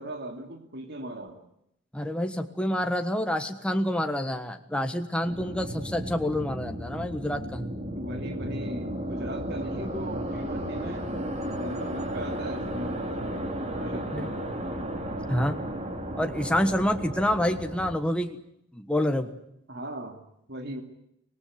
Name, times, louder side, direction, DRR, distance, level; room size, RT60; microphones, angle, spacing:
voice 1, 0.0-1.4 7.9-11.1 11.5-13.5 13.7-14.5 19.7-20.2 20.5-20.8, right 1 dB, 60° right, 5 dB, 2.8 m, -38 dB
voice 2, 1.9-7.7 14.1-14.3 15.3-15.6 16.1-18.4 18.7-19.3, left 1 dB, 5° left, 5 dB, 1.4 m, -27 dB
sound 1, 5.2-18.0, right 1 dB, 35° right, 3.8 m, -34 dB
25.5 x 19.0 x 9.5 m, 0.78 s
head